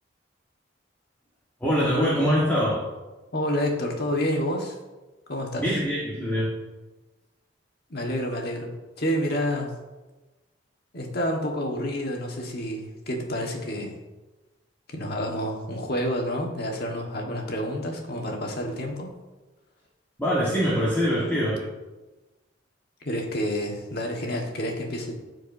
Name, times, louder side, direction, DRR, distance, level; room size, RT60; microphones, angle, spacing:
voice 1, 1.6-2.9 5.6-6.6 20.2-21.7, equal, 10° left, -8 dB, 1.4 m, -24 dB
voice 2, 3.3-4.8 5.3-5.7 7.9-8.7 9.0-9.7 10.9-13.9 14.9-19.1 23.0-25.1, equal, 55° left, 0 dB, 1.4 m, -29 dB
14.0 x 4.7 x 2.7 m, 1.1 s
head